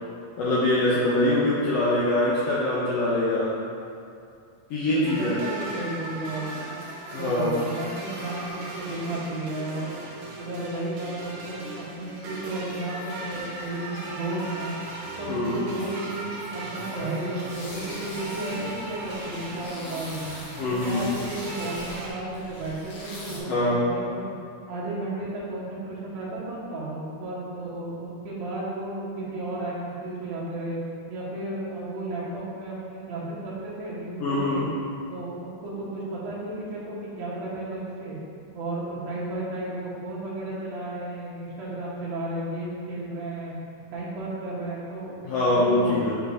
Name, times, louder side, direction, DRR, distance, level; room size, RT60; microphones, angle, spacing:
voice 1, 0.4-3.5 4.7-5.3 7.1-7.5 15.3-15.6 20.6-21.0 23.5-23.8 34.2-34.6 45.2-46.2, left 1 dB, 75° left, -8 dB, 1.5 m, -23 dB
voice 2, 4.8-6.8 7.2-9.9 10.4-14.7 15.2-20.2 20.6-24.2 24.7-30.8 31.1-34.7 35.1-38.2 38.5-43.5 43.9-46.2, right 2 dB, 55° right, -7 dB, 1.6 m, -33 dB
sound 1, 5.1-22.1, right 2 dB, 70° right, 2.1 m, -38 dB
sound 2, 17.5-23.4, left 1 dB, 60° left, 1.8 m, -41 dB
6.2 x 5.7 x 2.7 m, 2.5 s
omnidirectional pair, 3.6 m